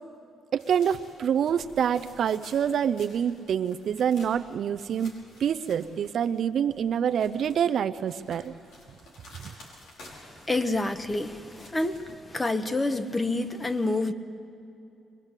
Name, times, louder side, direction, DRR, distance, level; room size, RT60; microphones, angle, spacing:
voice 1, 0.5-8.5 9.4-9.5, right 8 dB, 65° right, 11 dB, 0.6 m, -26 dB
sound 1, 0.6-6.4 6.7-12.2, left 1 dB, 85° left, 5.4 m, -52 dB
voice 2, 10.5-12.0 12.3-14.1, left 2 dB, 20° left, 9 dB, 1.3 m, -27 dB
23.0 x 21.5 x 8.2 m, 2.8 s
cardioid pair, 90°, 0 cm